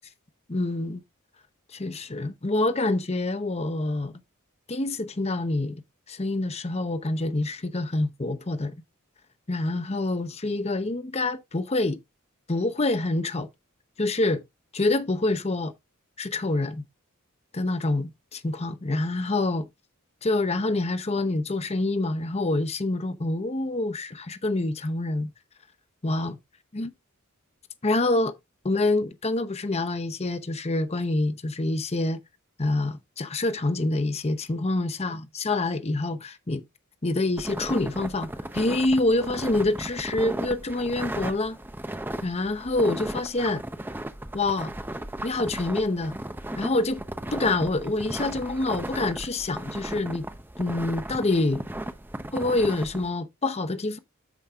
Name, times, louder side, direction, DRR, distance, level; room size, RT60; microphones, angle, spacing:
voice 1, 0.5-1.0 1.7-4.1 4.7-5.8 6.1-8.7 9.5-12.0 12.5-13.5 14.0-14.4 14.7-15.7 16.2-16.8 17.5-19.7 20.2-25.3 26.0-26.3 26.7-26.9 27.8-28.3 28.6-32.2 32.6-36.6 37.0-41.6 42.2-43.6 44.3-44.7 45.2-46.2 46.6-47.0 47.3-50.2 50.6-51.6 52.3-54.0, left 2 dB, 30° left, 0.8 m, -26 dB
Walking through a snowy forest, 37.4-53.1, right 1 dB, 10° right, 0.7 m, -36 dB
13.5 x 5.3 x 2.4 m
head